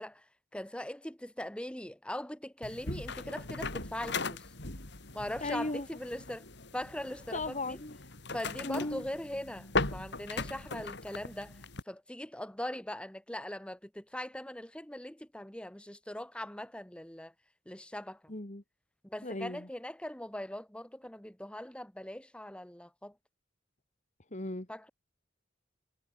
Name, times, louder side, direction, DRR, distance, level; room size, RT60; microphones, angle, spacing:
voice 1, 0.0-4.5 5.1-6.5 6.7-7.8 8.3-17.3 17.6-18.2 19.0-23.2 24.7-24.9, left 1 dB, 5° left, 1.2 m, -41 dB
sound 1, 2.6-11.8, left 3 dB, 60° left, 4.0 m, -39 dB
voice 2, 5.4-5.9 7.3-8.0 8.6-9.0 18.3-18.6 19.2-19.7 24.3-24.7, left 2 dB, 35° left, 2.1 m, -36 dB
head